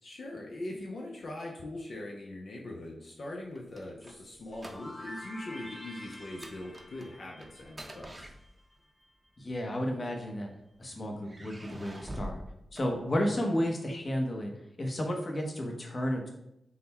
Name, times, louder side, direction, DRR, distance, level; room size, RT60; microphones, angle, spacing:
voice 1, 0.0-8.2, left 1 dB, 70° left, -1 dB, 0.6 m, -41 dB
sound 1, 3.3-5.2 5.5-5.7 6.1-8.9 9.8-10.6 11.2-13.5, right 1 dB, 25° right, 0.7 m, -46 dB
sound 2, 4.0-8.7, equal, 15° left, 0.6 m, -48 dB
voice 2, 9.4-10.5 10.8-12.4 12.7-14.5 14.8-16.3, equal, 40° left, 1 dB, 0.8 m, -32 dB
3.7 x 2.2 x 4.2 m, 0.81 s
cardioid pair, 65°, 0 cm